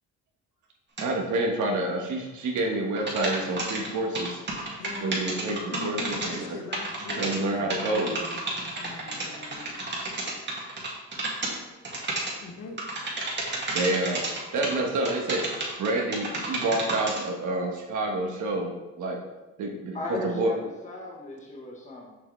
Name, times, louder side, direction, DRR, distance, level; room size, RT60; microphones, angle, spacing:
sound 1, 1.0-1.1 3.0-6.5 6.7-7.4 7.7-11.6 11.8-12.3 12.8-14.7 15.0-17.2, right 2 dB, 35° right, 2.0 m, -31 dB
voice 1, 1.0-4.4 5.0-6.6 7.2-8.2 13.7-14.3 14.5-15.4 15.8-19.2 19.6-20.5, right 2 dB, 75° right, 0 dB, 1.3 m, -28 dB
voice 2, 4.8-9.8 12.4-12.8, left 4 dB, 90° left, 5 dB, 1.0 m, -41 dB
voice 3, 19.9-22.2, left 2 dB, 25° left, -1 dB, 1.2 m, -37 dB
6.8 x 5.7 x 3.3 m, 1.1 s
cardioid pair, 90°, 30 cm